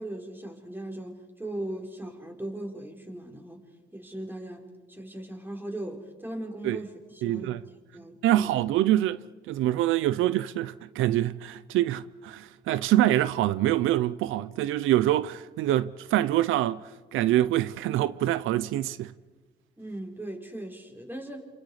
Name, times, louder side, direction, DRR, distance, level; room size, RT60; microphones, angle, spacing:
voice 1, 0.0-3.6 3.9-8.6 19.8-21.5, right 1 dB, 10° right, 5.1 m, -38 dB
voice 2, 7.2-7.6 8.2-9.2 9.5-16.8 17.1-19.1, right 13 dB, 90° right, 0.6 m, -25 dB
28.5 x 28.0 x 5.0 m
cardioid pair, 90°, 20 cm